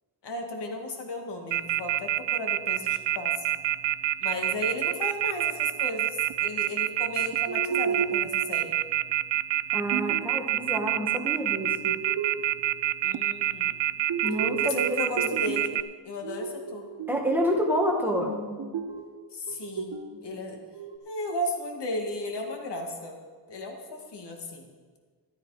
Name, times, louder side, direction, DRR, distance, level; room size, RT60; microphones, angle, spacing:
voice 1, 0.2-3.5 4.2-8.8 13.0-13.8 14.6-15.8 16.0-16.9 19.3-20.6 21.1-23.2 23.5-24.7, left 1 dB, 70° left, 3 dB, 2.0 m, -35 dB
Telephone, 1.5-15.8, right 14 dB, 90° right, 0.5 m, -26 dB
sound 1, 7.5-8.5 9.9-11.0 11.6-12.6 14.1-15.7 16.2-17.3 17.7-19.2 19.5-21.0, right 6 dB, 70° right, 1.7 m, -34 dB
voice 2, 9.7-12.0 14.2-15.3 17.1-18.3, equal, 5° right, -1 dB, 1.7 m, -28 dB
13.0 x 13.0 x 4.9 m, 1.5 s
wide cardioid pair, 150°, 43 cm